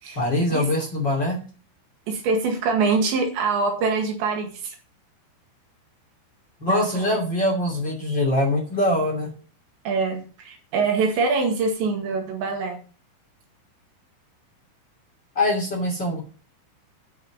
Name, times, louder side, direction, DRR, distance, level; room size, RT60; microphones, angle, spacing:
voice 1, 0.1-1.4 6.6-9.3 15.3-16.2, left 1 dB, 30° left, 1 dB, 2.8 m, -23 dB
voice 2, 2.1-4.8 6.7-7.2 9.9-12.8, right 4 dB, 75° right, 3 dB, 4.2 m, -24 dB
12.0 x 6.4 x 6.2 m, 0.37 s
omnidirectional pair, 5.3 m